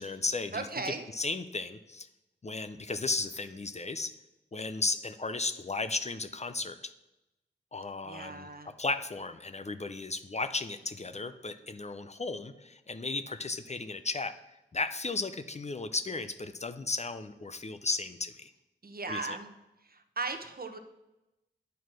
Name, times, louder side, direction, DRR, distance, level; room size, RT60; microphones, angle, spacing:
voice 1, 0.0-2.1 2.4-4.1 4.5-6.9 7.7-8.5 8.8-14.3 14.7-18.5 19.1-19.4, left 3 dB, 35° left, 10 dB, 0.5 m, -35 dB
voice 2, 0.5-1.1 8.0-8.7 18.8-19.6 19.8-20.8, right 3 dB, 50° right, 7 dB, 0.9 m, -37 dB
9.2 x 4.6 x 6.1 m, 0.95 s
wide cardioid pair, 55°, 20 cm